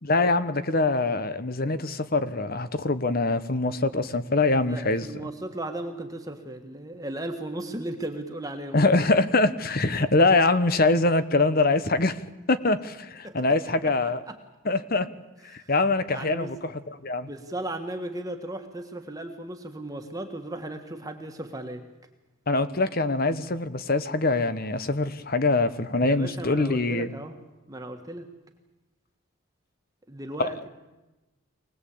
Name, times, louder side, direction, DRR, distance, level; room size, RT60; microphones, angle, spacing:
voice 1, 0.0-5.1 8.7-12.2 12.5-14.2 14.6-15.1 15.7-16.7 17.0-17.3 22.5-27.1 30.4-30.5, left 3 dB, 45° left, 12 dB, 1.1 m, -23 dB
voice 2, 4.4-8.9 13.2-13.5 13.8-13.9 14.3-14.4 15.5-15.8 16.1-16.5 17.2-21.9 26.0-27.3 27.7-28.3 30.1-30.7, right 1 dB, 15° right, 5 dB, 1.6 m, -36 dB
25.0 x 19.5 x 8.6 m, 1.1 s
head